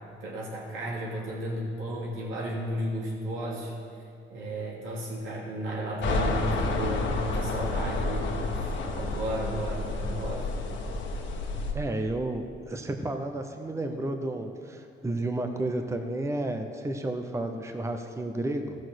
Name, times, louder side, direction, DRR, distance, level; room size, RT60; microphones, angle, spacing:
voice 1, 0.0-3.7 4.3-10.5, right 1 dB, 85° right, -5 dB, 3.0 m, -34 dB
sound 1, 6.0-11.7, left 2 dB, 70° left, 1.4 m, -30 dB
voice 2, 11.7-18.7, right 2 dB, 15° right, 6 dB, 0.8 m, -32 dB
14.0 x 6.5 x 6.4 m, 2.4 s
cardioid pair, 90°, 20 cm